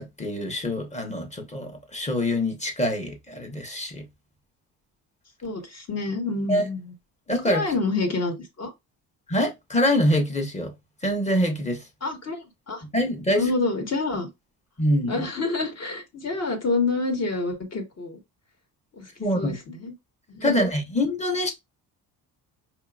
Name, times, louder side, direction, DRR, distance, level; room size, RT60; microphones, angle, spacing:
voice 1, 0.0-4.0 6.5-6.6 7.3-7.7 9.3-10.7 11.0-11.8 12.9-13.4 14.8-15.2 19.2-19.5 20.4-21.5, left 1 dB, 15° left, 1.1 m, -25 dB
voice 2, 5.4-6.8 7.4-8.7 12.0-12.8 13.3-14.3 15.1-18.2 18.9-19.9 20.3-20.6, left 3 dB, 40° left, 1.5 m, -28 dB
5.0 x 2.8 x 2.4 m
cardioid pair, 105°, 40 cm